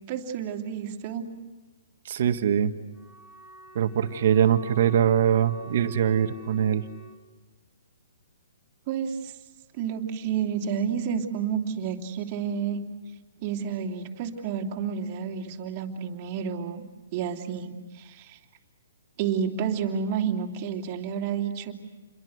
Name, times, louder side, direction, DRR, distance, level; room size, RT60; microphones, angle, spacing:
voice 1, 0.1-1.3 8.9-9.3 9.8-12.9 13.4-16.8 17.1-18.4 19.2-21.7, right 7 dB, 30° right, 2 dB, 3.0 m, -30 dB
voice 2, 2.1-2.7 3.8-6.8, right 9 dB, 55° right, 8 dB, 1.7 m, -22 dB
Wind instrument woodwind instrument, 2.9-7.2, right 1 dB, 15° left, 2.1 m, -48 dB
28.5 x 23.0 x 8.1 m, 1.2 s
hypercardioid pair, 155°, 0 cm